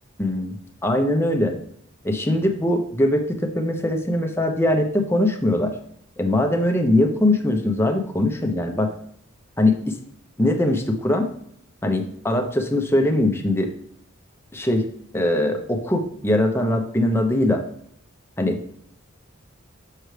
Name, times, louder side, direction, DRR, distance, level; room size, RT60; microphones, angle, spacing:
voice 1, 0.2-0.6 0.8-1.5 2.0-5.7 6.2-8.9 9.6-10.0 10.4-11.3 11.8-13.7 14.5-14.8 15.1-17.6 18.4-18.7, left 1 dB, 10° left, 3 dB, 0.8 m, -21 dB
6.6 x 6.3 x 3.2 m, 0.68 s
head